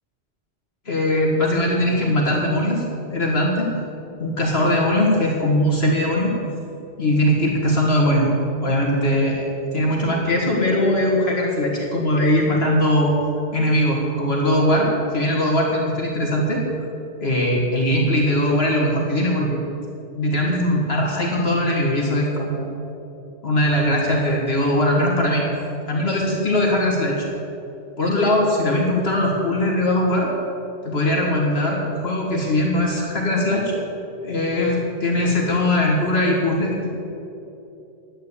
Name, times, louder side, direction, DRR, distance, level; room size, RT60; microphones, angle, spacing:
voice 1, 0.9-2.8 3.1-3.7 4.2-6.3 7.0-8.3 8.6-13.1 13.5-16.6 17.2-19.6 20.1-22.7 23.4-25.5 25.9-27.3 28.0-30.3 30.8-33.7 34.2-36.9, left 1 dB, 60° left, -2 dB, 2.1 m, -20 dB
11.0 x 9.6 x 8.3 m, 2.8 s
omnidirectional pair, 1.2 m